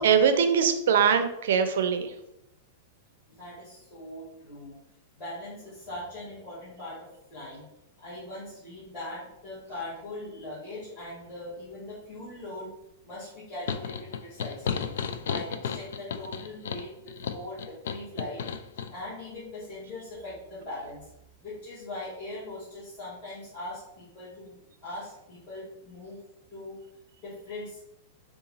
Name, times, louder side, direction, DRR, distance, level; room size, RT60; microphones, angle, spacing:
voice 1, 0.0-2.1, right 7 dB, 75° right, 8 dB, 0.5 m, -22 dB
voice 2, 3.4-4.8 5.2-7.6 8.0-12.7 13.0-18.4 18.9-21.1 21.4-26.2 26.5-26.8 27.2-27.8, left 1 dB, 20° left, -12 dB, 1.4 m, -41 dB
sound 1, 13.7-18.9, left 7 dB, 75° left, 0.3 m, -33 dB
3.9 x 2.4 x 3.9 m, 0.83 s
supercardioid pair, 175°, 0 cm